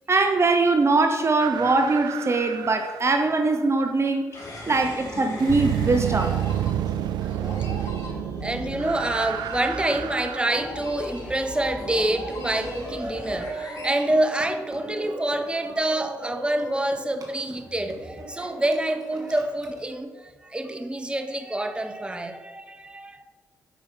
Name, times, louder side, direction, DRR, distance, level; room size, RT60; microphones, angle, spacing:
voice 1, 0.1-4.3 4.7-6.3, right 3 dB, 40° right, 6 dB, 0.8 m, -22 dB
sound 1, 1.4-3.7 5.4-10.5, right 12 dB, 80° right, 0.4 m, -30 dB
sound 2, 4.3-14.9, left 1 dB, 55° left, 3.1 m, -38 dB
voice 2, 7.2-7.7 8.4-23.2, right 1 dB, 15° right, 7 dB, 1.0 m, -27 dB
Laughter, 11.8-19.9, right 2 dB, 55° right, 2.0 m, -39 dB
8.5 x 5.6 x 5.7 m, 1.4 s
supercardioid pair, 60°, 7 cm